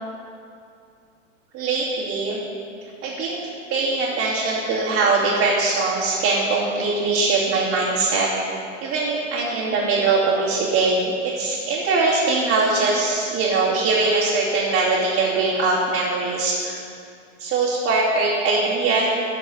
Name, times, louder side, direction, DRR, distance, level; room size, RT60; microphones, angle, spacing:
voice 1, 1.5-2.4 3.0-8.3 8.8-16.8 17.4-19.1, right 3 dB, 40° right, -9 dB, 2.9 m, -21 dB
13.5 x 5.3 x 7.0 m, 2.4 s
hypercardioid pair, 105°, 38 cm